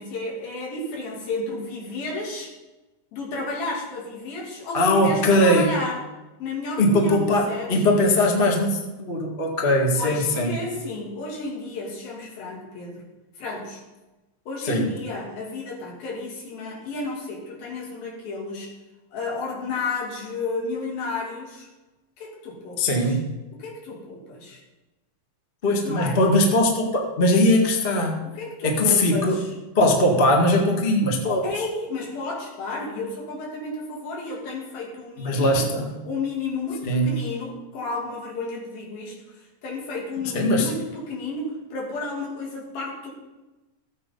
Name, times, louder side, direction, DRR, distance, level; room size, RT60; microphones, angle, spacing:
voice 1, 0.0-2.5 3.1-6.0 6.4-7.9 9.9-13.1 13.4-13.8 14.5-18.7 19.1-21.7 22.2-23.2 23.5-24.6 25.8-26.2 28.2-29.5 31.4-35.7 36.1-43.1, left 3 dB, 80° left, -2 dB, 4.6 m, -32 dB
voice 2, 4.7-5.7 6.8-10.5 14.6-14.9 22.8-23.3 25.6-28.3 28.6-29.4 29.7-31.7 35.2-36.0 36.9-37.2 40.3-40.7, left 1 dB, 30° left, 1 dB, 1.0 m, -20 dB
15.0 x 8.9 x 5.4 m, 1.1 s
omnidirectional pair, 4.2 m